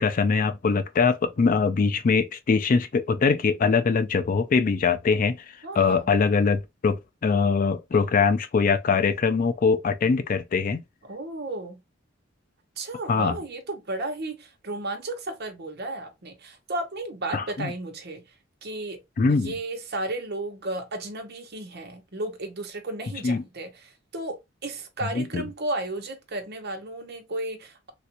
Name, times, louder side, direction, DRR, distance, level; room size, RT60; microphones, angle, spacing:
voice 1, 0.0-5.4 5.8-10.8 13.1-13.4 17.3-17.7 19.2-19.5 23.2-23.4 25.1-25.4, left 5 dB, 45° left, 0.4 m, -22 dB
voice 2, 5.6-6.1 11.0-11.8 12.8-18.4 18.6-19.0 19.3-27.9, right 2 dB, 55° right, 0.9 m, -34 dB
3.4 x 2.5 x 2.9 m
head